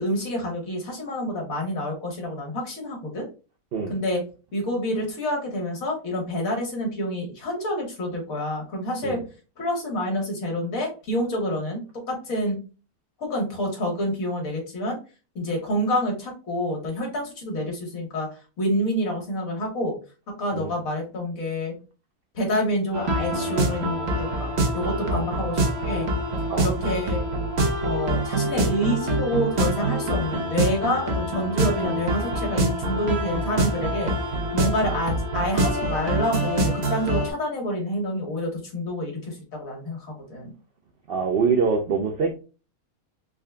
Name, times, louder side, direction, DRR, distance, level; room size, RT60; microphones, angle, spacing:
voice 1, 0.0-3.3 3.9-4.2 4.5-9.2 9.6-12.6 13.2-15.0 15.3-20.0 20.4-21.7 22.3-25.6 25.8-26.1 26.6-27.2 27.8-34.1 34.5-40.5, equal, 70° left, 1.7 m, -28 dB
sound 1, 22.9-37.3, right 1 dB, 50° right, 1.0 m, -25 dB
voice 2, 41.1-42.3, right 5 dB, 70° right, 0.5 m, -24 dB
3.7 x 2.2 x 3.5 m
omnidirectional pair, 1.5 m